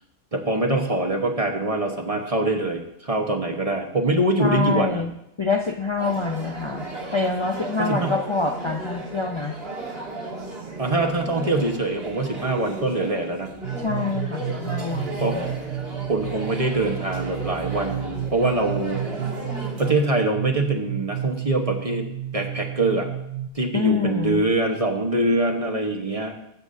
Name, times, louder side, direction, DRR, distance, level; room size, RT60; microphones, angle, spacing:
voice 1, 0.3-5.0 7.8-8.1 10.8-13.5 15.2-15.4 16.1-19.0 19.8-22.1 22.3-23.1 23.5-26.3, right 2 dB, 30° right, 2 dB, 1.2 m, -24 dB
voice 2, 4.4-5.1 5.4-6.9 7.1-9.6 13.8-15.4 23.7-24.4, left 4 dB, 35° left, 3 dB, 0.5 m, -26 dB
sound 1, 6.0-19.9, right 1 dB, 50° right, 1.9 m, -35 dB
sound 2, 13.6-23.5, right 10 dB, 75° right, 1.0 m, -32 dB
20.5 x 8.2 x 2.7 m, 0.79 s
omnidirectional pair, 1.3 m